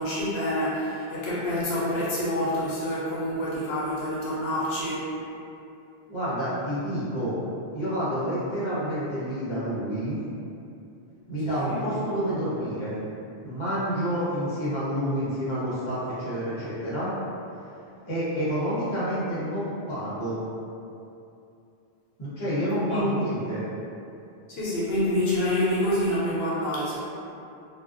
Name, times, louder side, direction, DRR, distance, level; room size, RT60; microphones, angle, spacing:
voice 1, 0.0-5.1 11.5-11.9 22.9-23.1 24.5-27.0, left 1 dB, 75° left, -8 dB, 0.8 m, -27 dB
voice 2, 6.1-7.4 7.7-10.2 11.3-13.0 13.4-17.1 18.0-20.4 22.2-23.6, equal, 30° left, -10 dB, 0.7 m, -29 dB
2.4 x 2.1 x 2.4 m, 2.7 s
omnidirectional pair, 1.1 m